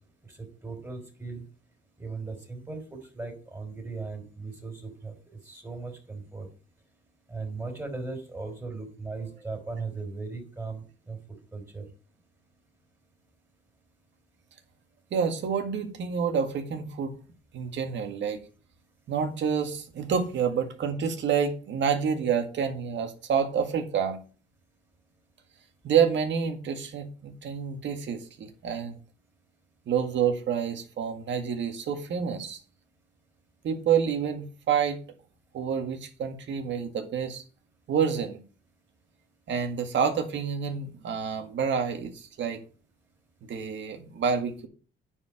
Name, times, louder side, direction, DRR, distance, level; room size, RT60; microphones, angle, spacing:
voice 1, 0.2-1.4 2.0-5.1 5.4-6.5 7.3-11.8, right 3 dB, 15° right, 3 dB, 3.4 m, -38 dB
voice 2, 15.1-17.1 17.5-18.4 19.1-24.2 25.8-29.0 29.9-32.6 33.6-35.0 35.5-37.4 37.9-38.4 39.5-42.6 43.4-44.7, right 7 dB, 65° right, 6 dB, 1.9 m, -28 dB
9.7 x 4.9 x 6.6 m, 0.38 s
cardioid pair, 90°, 20 cm